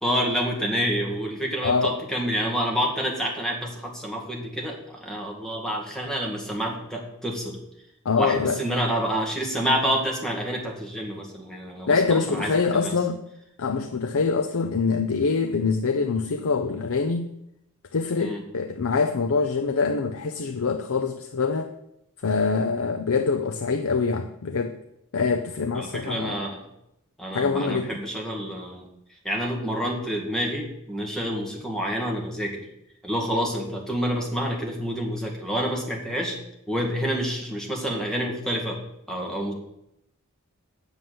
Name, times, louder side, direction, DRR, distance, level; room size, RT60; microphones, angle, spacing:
voice 1, 0.0-7.6 8.2-12.9 18.2-18.4 25.8-26.6 27.2-28.8 29.2-32.7 33.0-36.4 36.7-38.8 39.1-39.5, equal, 5° left, -1 dB, 2.0 m, -28 dB
voice 2, 1.6-2.0 8.1-8.6 11.9-13.2 13.6-17.3 17.9-21.7 22.2-24.7 25.1-26.4 27.3-27.9, left 4 dB, 65° left, 6 dB, 0.6 m, -24 dB
7.8 x 7.0 x 7.8 m, 0.82 s
head